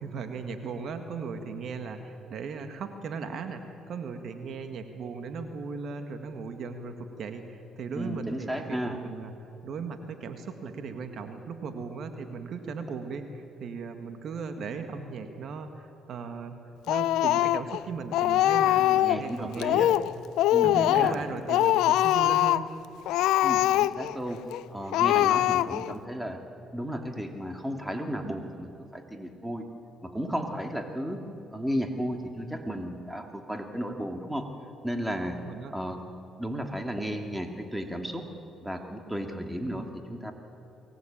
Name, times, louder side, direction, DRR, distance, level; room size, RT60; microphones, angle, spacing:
voice 1, 0.0-9.3 9.6-16.6 16.9-19.8 20.6-22.7 35.4-35.7, right 5 dB, 65° right, 7 dB, 1.8 m, -37 dB
voice 2, 7.9-9.0 18.8-19.9 20.5-21.2 23.4-24.4 24.7-26.4 26.7-29.7 30.0-31.2 31.5-34.5 34.8-35.4 35.7-36.0 36.4-38.3 38.6-40.3, equal, 5° right, 4 dB, 2.6 m, -34 dB
Speech, 16.9-17.8 18.1-19.2 19.6-20.1 20.4-21.2 21.5-22.7 23.1-24.1 24.5-24.6 24.9-25.9, left 13 dB, 85° left, 0.5 m, -23 dB
23.0 x 18.5 x 8.9 m, 2.8 s
supercardioid pair, 75°, 0 cm